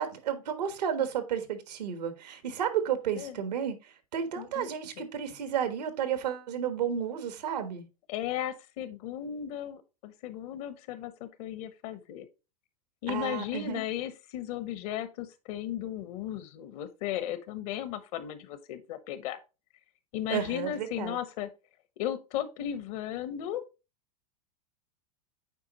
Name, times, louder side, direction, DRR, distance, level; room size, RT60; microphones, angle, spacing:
voice 1, 0.0-7.8 13.1-13.8 20.3-21.2, right 8 dB, 90° right, 1.4 m, -32 dB
voice 2, 4.4-4.7 5.0-5.1 8.1-12.3 13.0-19.4 20.1-21.5 22.0-23.6, left 11 dB, 60° left, 1.1 m, -35 dB
8.2 x 4.6 x 3.0 m
hypercardioid pair, 120°, 20 cm